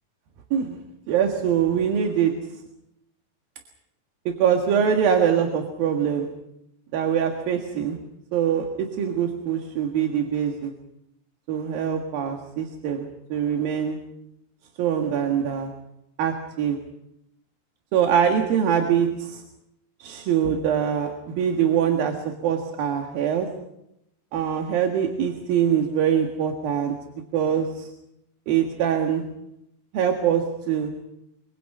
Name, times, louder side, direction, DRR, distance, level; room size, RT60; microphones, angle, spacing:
voice 1, 1.1-2.3 4.3-6.3 6.9-8.0 8.3-10.7 11.5-14.0 14.8-15.7 16.2-16.8 17.9-19.4 20.0-22.2 22.4-23.5 24.3-26.9 27.3-27.9 28.5-29.2 29.9-30.9, right 8 dB, 60° right, 3 dB, 3.2 m, -23 dB
26.0 x 24.5 x 5.5 m, 0.83 s
omnidirectional pair, 5.1 m